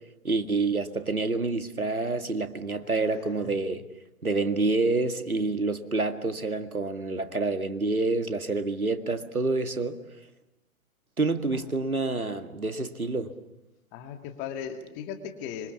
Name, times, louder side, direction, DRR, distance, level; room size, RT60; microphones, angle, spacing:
voice 1, 0.2-3.8 4.2-10.0 11.2-13.4, right 3 dB, 85° right, 2.1 m, -28 dB
voice 2, 2.8-3.5 13.9-15.7, left 8 dB, 25° left, 2.2 m, -38 dB
26.0 x 25.0 x 7.2 m
figure-of-eight pair, 120°, 42 cm